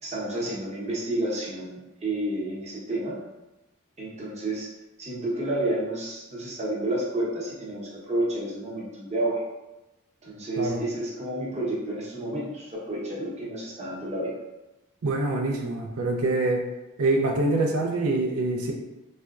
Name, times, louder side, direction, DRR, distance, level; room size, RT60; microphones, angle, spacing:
voice 1, 0.0-3.2 4.0-4.7 5.0-9.4 10.2-14.3, right 1 dB, 30° right, -5 dB, 0.8 m, -30 dB
voice 2, 15.0-16.6 17.0-18.7, right 2 dB, 80° right, 1 dB, 0.5 m, -25 dB
4.2 x 2.1 x 2.4 m, 1.0 s
head